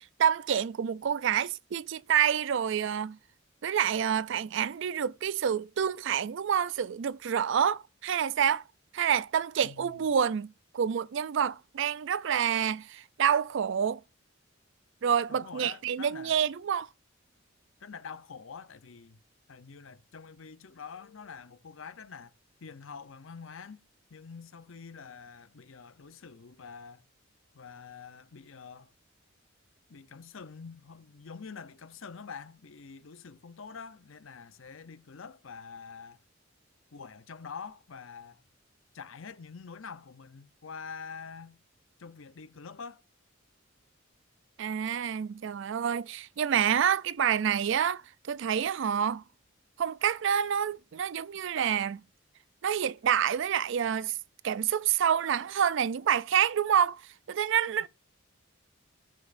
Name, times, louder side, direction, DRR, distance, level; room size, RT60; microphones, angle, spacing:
voice 1, 0.0-3.2 3.6-8.6 8.9-14.0 15.0-16.9 44.6-48.0 48.3-49.2 49.8-52.0 52.6-54.2 54.4-57.0 57.3-57.9, right 8 dB, 65° right, 0.4 m, -28 dB
voice 2, 9.6-10.0 15.3-16.4 17.8-19.2 19.5-22.3 22.6-23.8 24.1-27.1 27.5-28.9 29.9-36.2 36.9-38.4 38.9-41.6 42.0-43.0, left 5 dB, 75° left, 0.7 m, -46 dB
17.5 x 6.1 x 2.6 m
head